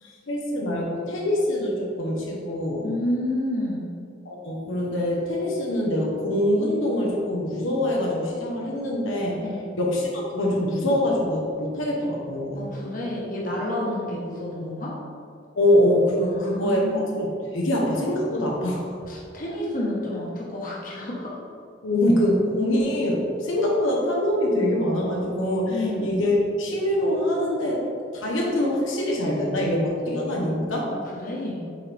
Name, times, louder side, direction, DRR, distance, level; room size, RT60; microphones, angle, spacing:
voice 1, 0.0-2.9 4.2-9.4 9.8-12.7 15.6-18.8 21.8-27.9 28.1-30.9, left 1 dB, 90° left, -2 dB, 1.2 m, -24 dB
voice 2, 2.8-3.9 9.4-9.7 12.5-14.9 16.3-17.2 19.1-21.3 25.7-26.2 30.9-31.6, left 1 dB, 45° left, -4 dB, 1.3 m, -30 dB
8.0 x 4.7 x 3.5 m, 2.4 s
head